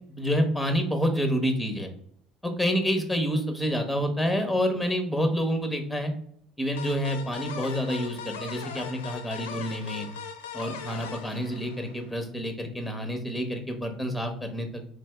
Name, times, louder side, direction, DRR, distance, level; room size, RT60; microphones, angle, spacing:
voice 1, 0.1-1.9 2.4-6.1 6.6-10.1 10.5-14.8, equal, ahead, 5 dB, 1.0 m, -28 dB
sound 1, 6.8-12.2, left 7 dB, 85° left, 0.4 m, -39 dB
3.9 x 2.6 x 3.4 m, 0.64 s
hypercardioid pair, 75°, 0 cm